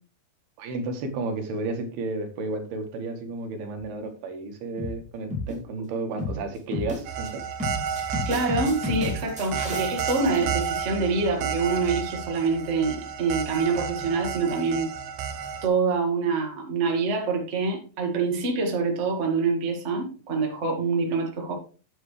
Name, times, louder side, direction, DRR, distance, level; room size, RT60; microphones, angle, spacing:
voice 1, 0.6-7.4, right 2 dB, 90° right, 5 dB, 3.5 m, -32 dB
sound 1, 3.8-4.1 4.8-5.0 5.3-5.6 6.2-6.4 6.7-7.3 7.6-10.4, left 2 dB, 5° right, 1.6 m, -32 dB
sound 2, 7.1-15.7, right 7 dB, 75° right, 2.7 m, -32 dB
voice 2, 8.2-14.9 15.6-21.5, right 4 dB, 35° right, 1 dB, 1.1 m, -26 dB
9.1 x 8.6 x 3.2 m, 0.37 s
omnidirectional pair, 4.4 m